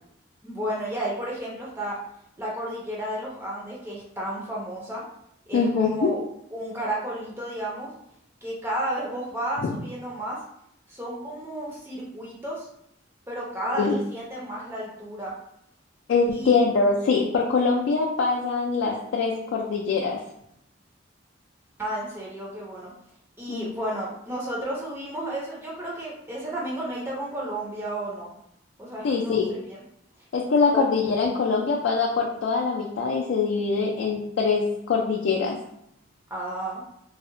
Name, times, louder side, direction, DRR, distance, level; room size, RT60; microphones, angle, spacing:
voice 1, 0.4-2.0 2.4-5.0 5.5-6.2 6.5-7.9 8.4-10.4 10.9-12.7 13.3-15.3 16.3-16.6 21.8-22.9 23.4-28.3 28.8-29.6 30.7-30.8 36.3-36.8, right 1 dB, 10° right, -5 dB, 0.4 m, -32 dB
voice 2, 5.5-6.1 9.6-9.7 13.8-14.0 16.1-20.2 23.5-23.7 29.0-29.5 30.3-35.6, left 4 dB, 65° left, -1 dB, 0.3 m, -23 dB
2.7 x 2.0 x 2.5 m, 0.76 s
head